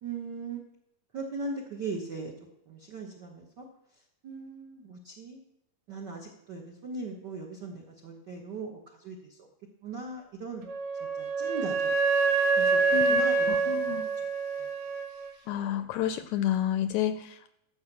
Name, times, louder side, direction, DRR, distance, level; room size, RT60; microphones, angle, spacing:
voice 1, 0.0-0.6 1.1-2.3 2.7-3.6 4.2-5.4 5.9-8.8 9.0-9.2 9.8-10.7 11.2-11.9 12.6-12.8 13.1-13.7, right 3 dB, 65° right, 0 dB, 1.0 m, -38 dB
Wind instrument woodwind instrument, 10.7-15.3, right 4 dB, 90° right, 3.0 m, -26 dB
voice 2, 12.9-14.1 15.5-17.6, left 11 dB, 80° left, 10 dB, 1.8 m, -30 dB
13.5 x 5.1 x 7.3 m, 0.83 s
omnidirectional pair, 3.7 m